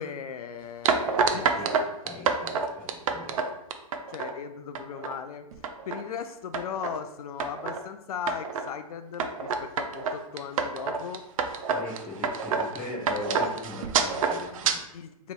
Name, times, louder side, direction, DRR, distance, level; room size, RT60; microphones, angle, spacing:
voice 1, 0.0-1.4 4.1-5.5 5.9-11.3 14.9-15.3, left 7 dB, 80° left, 9 dB, 0.4 m, -37 dB
sound 1, 0.8-4.3 4.7-5.1 5.5-6.0 6.5-7.0 7.4-7.8 8.3-8.7 9.2-14.7, right 5 dB, 65° right, 0.5 m, -28 dB
voice 2, 1.3-1.7 2.0-3.5 11.7-14.8, left 2 dB, 10° left, -4 dB, 0.8 m, -39 dB
3.0 x 2.9 x 4.4 m, 0.85 s
hypercardioid pair, 155°, 19 cm